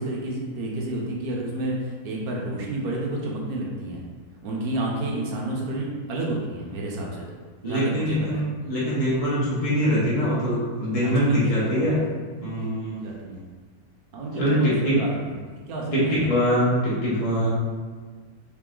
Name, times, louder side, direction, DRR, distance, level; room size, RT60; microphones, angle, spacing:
voice 1, 0.0-4.0 4.4-8.4 11.0-12.0 12.4-13.4 14.1-15.3 15.7-16.2, right 1 dB, 60° right, -2 dB, 1.1 m, -31 dB
voice 2, 7.6-12.0 12.3-13.0 14.4-14.9 15.9-17.5, equal, 20° left, -9 dB, 1.0 m, -23 dB
3.8 x 3.5 x 3.8 m, 1.5 s
omnidirectional pair, 2.3 m